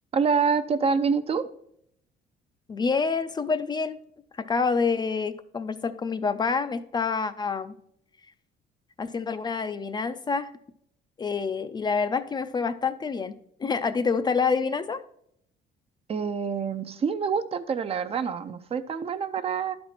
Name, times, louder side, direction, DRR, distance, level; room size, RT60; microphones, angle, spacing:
voice 1, 0.1-1.5 16.1-19.8, right 5 dB, 35° right, 11 dB, 0.5 m, -26 dB
voice 2, 2.7-4.0 4.4-7.7 9.0-10.5 11.2-13.3 13.6-15.0, left 5 dB, 25° left, 11 dB, 0.4 m, -27 dB
11.0 x 4.3 x 4.3 m, 0.71 s
cardioid pair, 110°, 17 cm